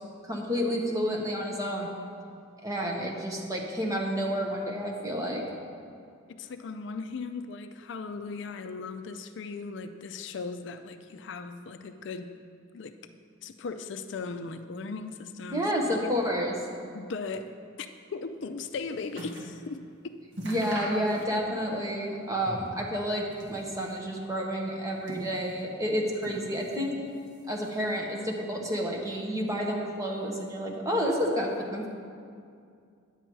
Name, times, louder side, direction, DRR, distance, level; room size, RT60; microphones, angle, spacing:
voice 1, 0.2-1.9 2.6-5.4 15.5-16.6 20.4-26.9 27.5-31.9, equal, 15° right, -1 dB, 1.0 m, -30 dB
voice 2, 6.3-12.3 12.7-12.9 13.4-15.7 16.9-17.5 17.8-19.8, left 4 dB, 60° left, 8 dB, 0.4 m, -38 dB
sound 1, 18.4-19.6 19.9-20.0 20.3-21.6 21.9-22.8 23.2-24.1 24.7-25.7 26.2-26.9 27.2-27.9 28.6-28.7, equal, 60° right, 1.4 m, -42 dB
10.0 x 7.6 x 4.6 m, 2.3 s
head